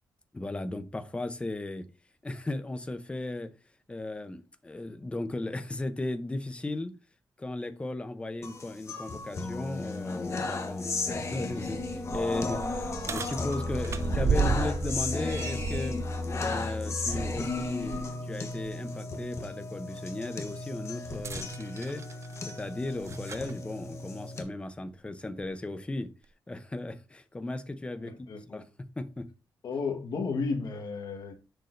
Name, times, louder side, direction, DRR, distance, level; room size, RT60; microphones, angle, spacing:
voice 1, 0.3-1.9 2.2-3.6 3.9-7.0 7.4-16.1 16.3-22.1 22.4-26.1 26.5-28.7 29.0-29.3, left 2 dB, 15° left, 0.7 m, -36 dB
sound 1, 8.4-24.4, left 3 dB, 40° left, 1.1 m, -34 dB
sound 2, 11.9-18.1 18.5-18.7 21.1-23.5 24.5-24.6 25.4-25.5, right 6 dB, 40° right, 0.4 m, -34 dB
voice 2, 13.7-14.5 28.0-28.6 29.6-31.3, left 4 dB, 65° left, 1.4 m, -34 dB
6.6 x 6.2 x 2.6 m
wide cardioid pair, 130°, 8 cm